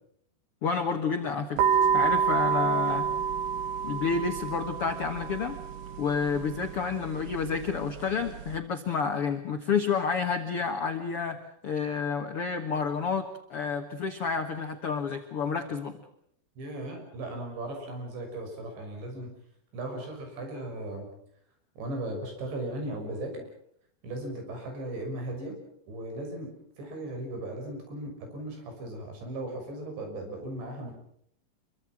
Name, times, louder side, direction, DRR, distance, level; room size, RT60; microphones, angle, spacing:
voice 1, 0.6-1.7 1.9-3.1 3.8-5.6 6.0-11.4 11.6-16.0, left 5 dB, 70° left, 6 dB, 1.3 m, -30 dB
sound 1, 1.6-8.6, right 7 dB, 65° right, 2.6 m, -29 dB
voice 2, 16.6-19.3 19.7-21.1 21.8-23.4 24.0-25.6 25.9-26.5 26.8-30.9, right 1 dB, 85° right, 4 dB, 8.4 m, -37 dB
27.0 x 23.5 x 6.1 m, 0.69 s
omnidirectional pair, 5.0 m